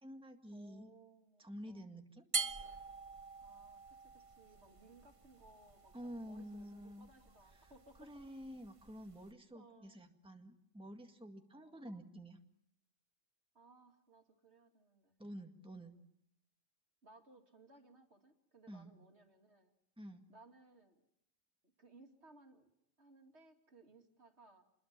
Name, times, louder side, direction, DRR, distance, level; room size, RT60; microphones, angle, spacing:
voice 1, 0.0-0.9 1.4-2.3 5.9-7.1 7.5-7.7 8.0-12.4 15.2-15.9 18.7-18.9 20.0-20.3, equal, 5° right, 4 dB, 1.9 m, -50 dB
voice 2, 0.5-1.9 3.4-8.1 9.5-10.0 11.6-11.8 13.5-15.2 17.0-19.7 20.3-21.0 21.8-22.7 23.0-24.6, right 2 dB, 60° right, 4 dB, 2.7 m, -63 dB
sound 1, 2.3-9.3, right 4 dB, 30° right, 1.1 m, -46 dB
28.0 x 22.0 x 7.4 m, 0.78 s
omnidirectional pair, 1.3 m